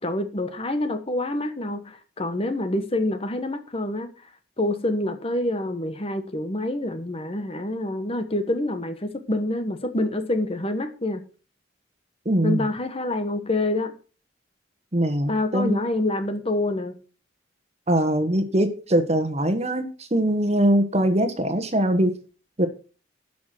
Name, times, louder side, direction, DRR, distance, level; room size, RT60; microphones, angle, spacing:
voice 1, 0.0-4.1 4.6-11.2 12.4-13.9 15.3-17.0, left 1 dB, 30° left, 1.1 m, -27 dB
voice 2, 12.2-12.6 14.9-15.8 17.9-22.1 22.6-22.7, right 1 dB, 35° right, 1.3 m, -22 dB
11.5 x 6.1 x 5.9 m
head